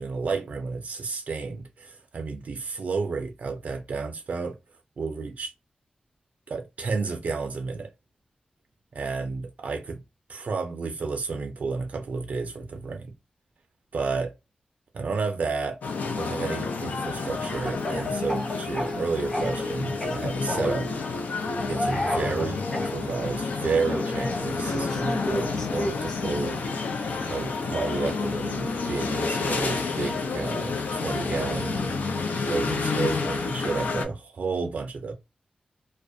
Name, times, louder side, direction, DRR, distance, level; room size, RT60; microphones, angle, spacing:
voice 1, 0.0-4.6 5.0-5.5 6.5-7.9 8.9-10.0 10.3-13.1 13.9-14.3 14.9-15.8 16.1-21.3 21.7-26.6 27.3-31.9 32.3-35.1, right 4 dB, 60° right, 0.4 m, -31 dB
sound 1, 15.8-34.1, left 4 dB, 80° left, 0.4 m, -29 dB
Speech / Cough, 17.4-19.7 20.0-20.8 21.7-22.9 23.9-26.2, equal, 15° left, 0.6 m, -32 dB
2.3 x 2.1 x 2.5 m
wide cardioid pair, 175°, 3 cm